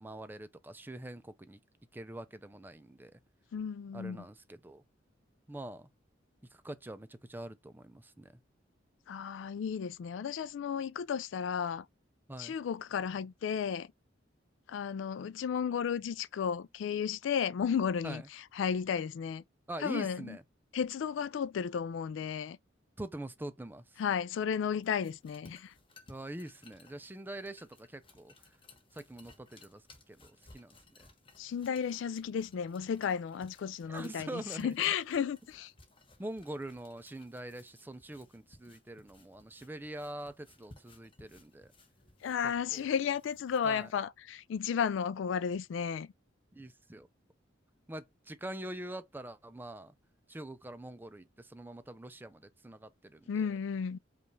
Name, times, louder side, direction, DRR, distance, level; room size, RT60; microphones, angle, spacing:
voice 1, 0.0-1.6 1.9-3.2 3.9-4.8 5.5-5.9 6.5-8.3 12.3-12.5 18.0-18.3 19.7-20.4 23.0-24.0 26.1-28.3 28.9-31.1 33.9-34.9 36.2-41.7 42.7-42.9 43.6-43.9 46.5-47.1 47.9-49.9 50.3-53.5, right 1 dB, 10° right, 0.4 m, -44 dB
voice 2, 3.5-4.2 9.1-11.9 12.4-13.9 14.7-18.2 18.5-19.4 19.8-20.4 20.7-22.6 24.0-25.7 31.4-35.7 42.2-46.1 53.3-54.0, left 7 dB, 70° left, 0.3 m, -33 dB
sound 1, 24.8-44.0, left 2 dB, 30° left, 1.1 m, -61 dB
5.3 x 2.4 x 3.1 m
head